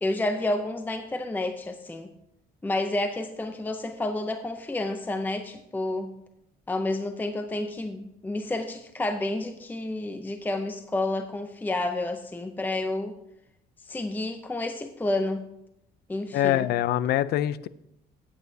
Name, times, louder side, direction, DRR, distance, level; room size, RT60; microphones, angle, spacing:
voice 1, 0.0-2.1 2.6-6.1 6.7-13.1 13.8-15.4 16.1-16.7, left 2 dB, 10° left, 8 dB, 0.6 m, -30 dB
voice 2, 16.3-17.7, left 12 dB, 70° left, 18 dB, 0.4 m, -24 dB
14.0 x 8.6 x 2.7 m, 0.82 s
cardioid pair, 110°, 17 cm